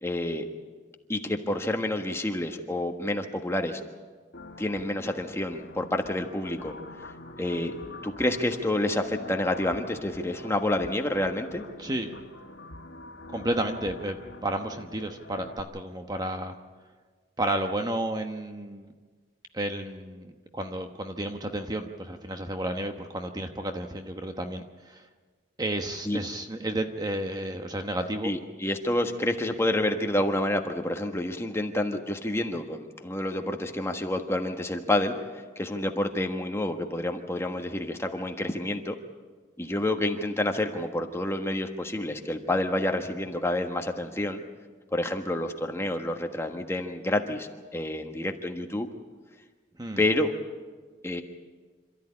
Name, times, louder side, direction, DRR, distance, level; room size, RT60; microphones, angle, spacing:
voice 1, 0.0-0.5 1.1-3.8 4.6-6.7 7.4-7.7 8.0-11.6 26.0-26.2 28.2-35.1 35.6-39.0 39.6-44.4 44.9-48.9 50.0-50.3 51.0-51.2, left 1 dB, 15° left, 4 dB, 1.4 m, -28 dB
sound 1, 4.3-15.6, left 2 dB, 80° left, 1.8 m, -44 dB
voice 2, 11.8-12.1 13.3-14.2 14.4-16.6 17.4-18.9 19.5-25.0 25.6-28.3 49.8-50.0, right 1 dB, 20° right, 5 dB, 1.0 m, -32 dB
27.0 x 13.5 x 9.8 m, 1.4 s
head